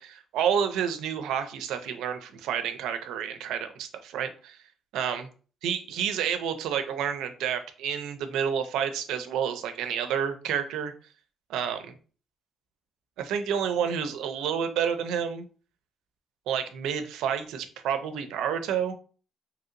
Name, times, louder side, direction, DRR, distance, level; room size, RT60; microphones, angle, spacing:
voice 1, 0.0-4.6 4.9-5.3 5.6-10.9 11.5-11.9 13.2-15.5 16.5-18.9, right 8 dB, 90° right, 8 dB, 0.4 m, -29 dB
2.8 x 2.8 x 2.5 m, 0.39 s
cardioid pair, 90°, 0 cm